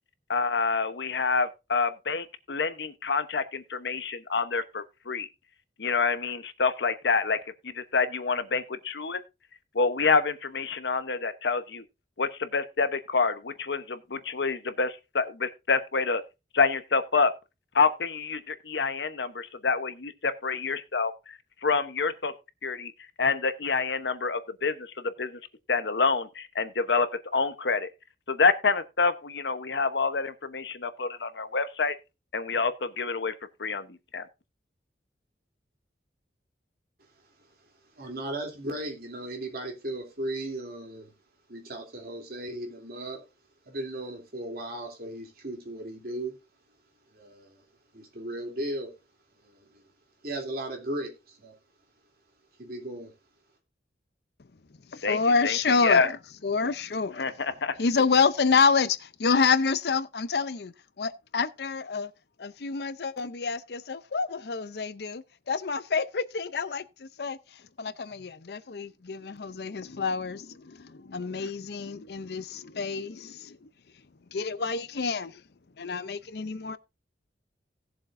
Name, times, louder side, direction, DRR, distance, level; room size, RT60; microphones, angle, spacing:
voice 1, 0.3-5.3 5.8-7.4 7.7-9.2 9.7-11.8 12.2-16.2 16.5-17.3 17.7-21.1 21.6-22.3 22.6-22.9 23.2-24.9 25.2-25.4 25.7-27.1 27.3-27.9 28.3-31.9 32.3-33.3 33.6-33.9 34.1-34.2 55.0-55.2 55.4-55.5 55.8-56.1 57.2-57.8, left 4 dB, 80° left, 1.0 m, -27 dB
voice 2, 37.9-41.1 41.5-43.2 43.7-46.3 47.1-47.6 47.9-48.9 49.4-49.8 50.2-51.6 52.6-53.1, right 1 dB, 60° right, 3.0 m, -36 dB
voice 3, 54.9-62.1 62.4-74.1 74.3-75.4 75.8-76.8, left 5 dB, 65° left, 0.6 m, -28 dB
17.5 x 7.3 x 2.6 m
head